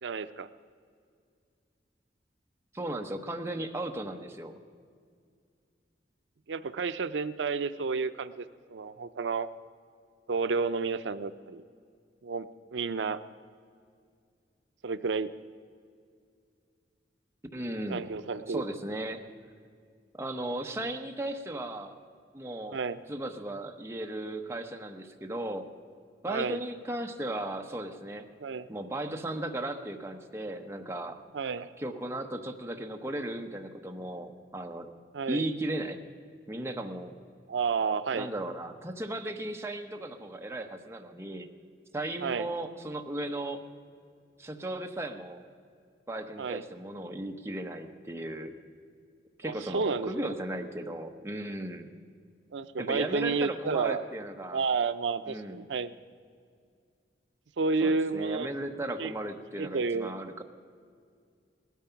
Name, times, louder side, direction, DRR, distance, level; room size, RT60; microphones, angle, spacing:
voice 1, 0.0-0.5 6.5-8.4 8.7-9.5 10.3-11.6 12.2-13.2 14.8-15.3 17.9-18.6 22.7-23.0 26.3-26.6 28.4-28.7 31.3-31.7 35.1-35.5 37.5-38.3 42.2-42.5 46.4-46.6 49.4-50.3 52.5-54.0 54.5-55.9 57.6-58.5 59.0-59.1 59.6-60.1, right 4 dB, 80° right, 12 dB, 0.5 m, -31 dB
voice 2, 2.7-4.5 17.5-18.0 18.5-19.2 20.1-22.0 22.3-22.8 23.1-25.7 26.2-28.3 28.7-31.2 31.8-34.9 35.3-36.0 36.5-37.1 38.1-41.5 41.9-43.6 44.4-45.4 46.1-48.5 49.4-51.9 52.8-54.6 55.3-55.6 57.8-60.4, right 1 dB, 15° right, 4 dB, 0.9 m, -36 dB
18.0 x 13.0 x 5.8 m, 2.2 s
head